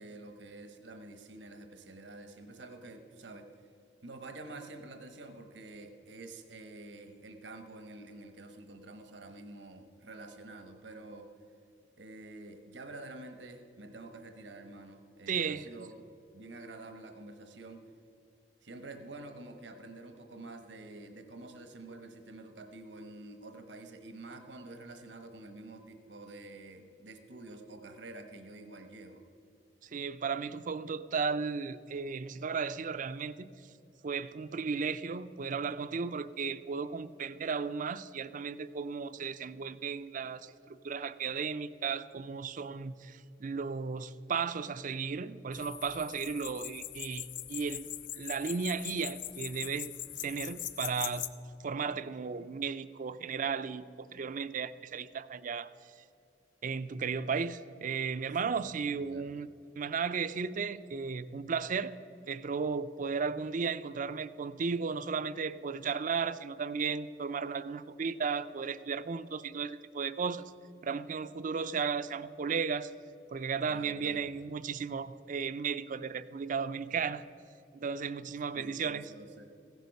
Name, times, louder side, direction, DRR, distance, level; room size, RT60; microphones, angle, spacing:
voice 1, 0.0-3.5 4.0-11.3 12.0-17.8 18.6-29.2 58.4-58.6 58.8-59.4 73.7-74.3 78.5-79.4, right 2 dB, 80° right, 6 dB, 1.1 m, -48 dB
voice 2, 15.3-15.7 29.8-33.5 34.0-47.9 48.1-49.9 50.2-51.3 51.6-55.7 56.6-59.5 59.8-61.9 62.3-70.5 70.8-72.9 73.3-77.2 77.7-79.0, right 5 dB, 45° right, 14 dB, 0.4 m, -35 dB
sound 1, 45.5-51.3, left 12 dB, 75° left, 0.6 m, -41 dB
15.5 x 10.5 x 5.3 m, 2.6 s
head